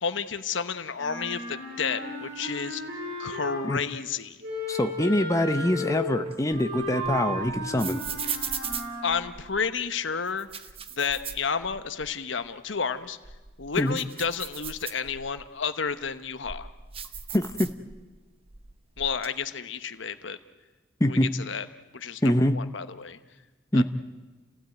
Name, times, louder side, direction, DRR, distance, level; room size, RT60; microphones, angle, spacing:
voice 1, 0.0-2.8 3.2-4.4 9.0-10.5 11.0-13.2 13.6-16.7 19.0-20.4 21.0-21.7 21.9-23.2 23.7-23.8, left 6 dB, 65° left, 11 dB, 1.0 m, -31 dB
Wind instrument woodwind instrument, 0.9-3.9 4.4-9.3, equal, 55° right, 8.0 m, -35 dB
voice 2, 4.7-8.0 13.8-14.0 17.3-17.7 21.0-21.3 22.2-22.6 23.7-23.8, left 1 dB, 15° left, 7 dB, 0.9 m, -24 dB
sound 1, 6.2-9.7 10.3-12.1 12.4-12.5 13.1-15.4 16.0-18.2 18.5-19.3, right 7 dB, 30° right, 1.1 m, -38 dB
29.5 x 16.5 x 9.2 m, 1.2 s
head